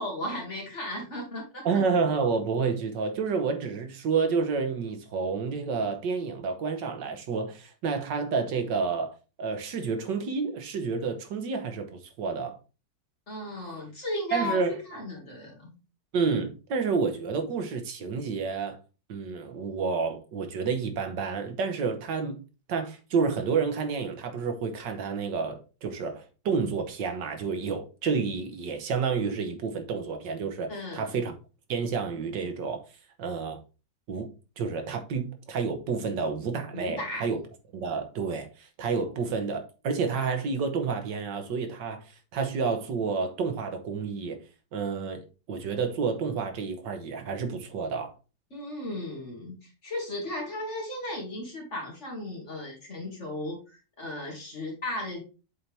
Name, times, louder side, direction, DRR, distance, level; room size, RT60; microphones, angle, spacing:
voice 1, 0.0-1.6 13.3-15.8 30.7-31.2 36.7-37.3 48.5-55.2, left 1 dB, 40° left, 2.5 m, -35 dB
voice 2, 1.6-12.6 14.3-14.8 16.1-18.8 19.1-22.4 22.7-31.3 31.7-32.8 33.2-33.6 34.1-37.4 37.7-44.5 44.7-45.2 45.5-48.1, right 5 dB, 80° right, 1.7 m, -29 dB
7.4 x 4.2 x 3.4 m
omnidirectional pair, 1.9 m